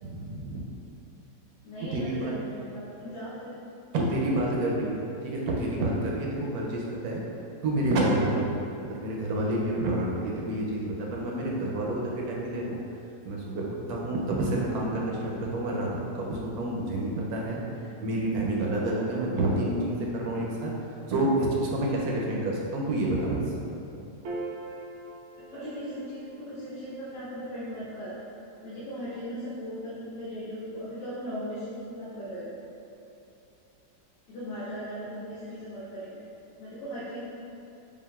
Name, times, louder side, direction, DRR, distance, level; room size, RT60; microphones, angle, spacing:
voice 1, 0.0-0.6 1.9-2.3 3.9-7.2 7.6-8.5 8.9-12.6 13.2-13.6 13.9-17.6 18.0-20.7 21.1-23.4 25.5-25.6, right 1 dB, 70° right, -3 dB, 1.0 m, -28 dB
voice 2, 1.6-3.6 25.4-28.2 28.6-32.6 34.3-36.2 36.6-37.3, equal, 75° left, -10 dB, 1.4 m, -38 dB
Piano, 24.2-30.9, right 2 dB, 85° right, 0.6 m, -45 dB
7.1 x 2.4 x 2.3 m, 2.8 s
omnidirectional pair, 1.9 m